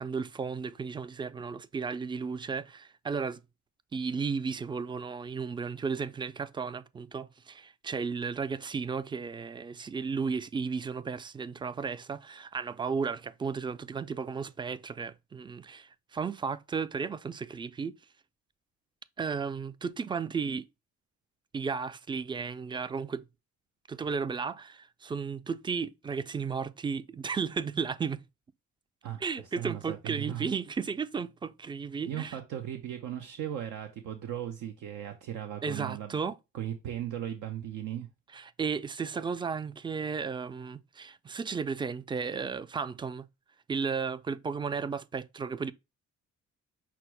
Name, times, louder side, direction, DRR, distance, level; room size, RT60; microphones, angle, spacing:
voice 1, 0.0-3.4 3.9-17.9 19.2-20.6 21.5-23.2 23.9-28.2 29.2-32.4 35.6-36.4 38.3-43.2 43.7-45.7, right 5 dB, 15° right, 0.3 m, -34 dB
voice 2, 29.0-30.5 32.1-36.2 36.5-38.1, right 11 dB, 80° right, 0.7 m, -37 dB
5.8 x 2.1 x 4.4 m
cardioid pair, 90°, 30 cm